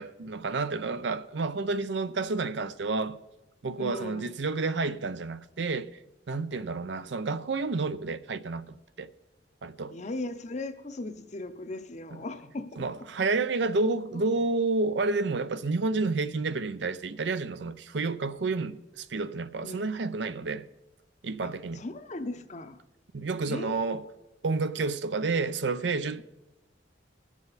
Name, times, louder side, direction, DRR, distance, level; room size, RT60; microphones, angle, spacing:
voice 1, 0.0-3.2 3.6-6.0 6.3-9.1 9.6-10.0 12.8-20.7 21.2-21.8 23.1-24.0 24.4-26.2, right 3 dB, 70° right, 0.6 m, -30 dB
voice 2, 3.8-4.3 9.9-12.8 13.9-14.0 19.6-19.8 21.4-22.8 23.5-23.9, left 2 dB, 40° left, 0.7 m, -38 dB
20.5 x 7.4 x 4.0 m
head